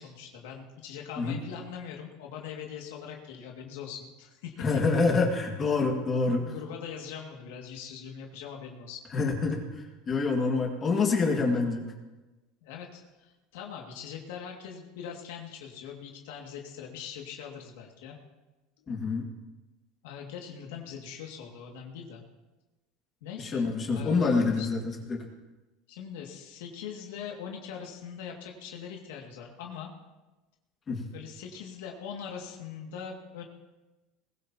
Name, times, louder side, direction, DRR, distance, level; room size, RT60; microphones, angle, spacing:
voice 1, 0.0-4.7 6.4-9.0 12.6-18.2 18.8-18.9 20.0-22.2 23.2-24.7 25.9-29.9 31.1-33.4, left 7 dB, 85° left, 0 dB, 2.2 m, -42 dB
voice 2, 4.6-6.5 9.1-11.8 18.9-19.2 23.4-24.8 25.1-25.2 30.9-31.0, left 4 dB, 25° left, 0 dB, 2.0 m, -26 dB
21.0 x 15.5 x 2.9 m, 1.1 s
supercardioid pair, 135°, 0 cm